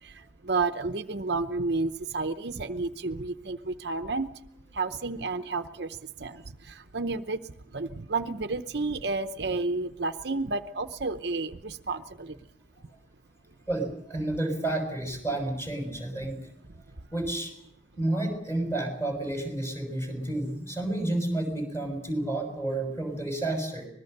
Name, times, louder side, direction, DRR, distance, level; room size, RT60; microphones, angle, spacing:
voice 1, 0.5-4.3 4.8-5.9 6.2-6.4 6.9-7.4 7.7-12.3, right 3 dB, 60° right, 9 dB, 0.8 m, -30 dB
voice 2, 13.7-16.5 17.1-17.5 18.0-23.9, right 1 dB, 15° left, 5 dB, 6.2 m, -30 dB
25.0 x 20.5 x 6.7 m, 0.74 s
head